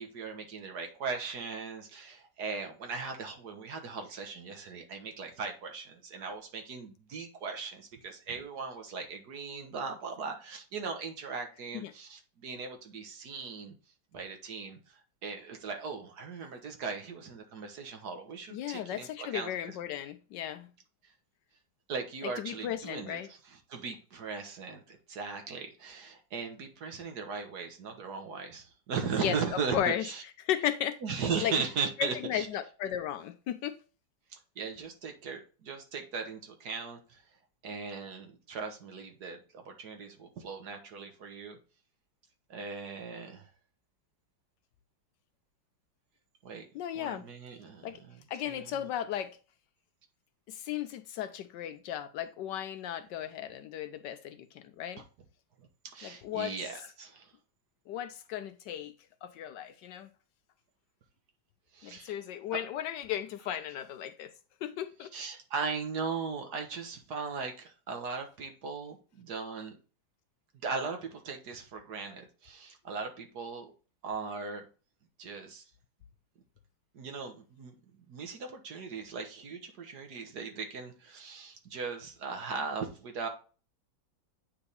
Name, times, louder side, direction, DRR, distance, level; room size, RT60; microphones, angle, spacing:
voice 1, 0.0-13.8 14.1-19.8 21.9-30.2 31.0-32.5 34.3-37.2 37.6-41.6 42.5-43.5 46.4-46.7 46.9-48.2 48.5-48.9 55.6-57.3 61.7-62.1 65.1-69.8 70.6-73.7 74.0-74.7 75.2-75.7 76.9-77.7 78.1-83.3, right 5 dB, 60° right, 1.6 m, -38 dB
voice 2, 18.5-20.7 22.2-23.3 29.2-30.1 30.4-31.0 31.4-31.5 32.0-33.8 46.7-47.3 47.8-48.0 48.3-49.4 50.5-55.0 56.0-56.5 57.9-58.9 59.2-60.1 61.8-64.3 64.6-65.1, left 10 dB, 75° left, 1.1 m, -35 dB
8.8 x 3.4 x 4.0 m
omnidirectional pair, 2.1 m